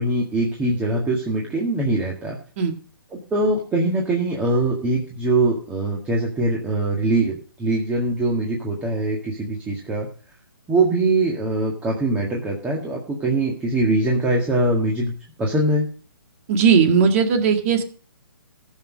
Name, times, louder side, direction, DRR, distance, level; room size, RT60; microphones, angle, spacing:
voice 1, 0.0-2.4 3.1-10.1 10.7-15.1 15.4-15.9, right 2 dB, 10° right, -2 dB, 1.8 m, -22 dB
voice 2, 16.5-17.8, right 6 dB, 35° right, 6 dB, 1.9 m, -17 dB
14.5 x 6.5 x 6.3 m, 0.42 s
hypercardioid pair, 150°, 12 cm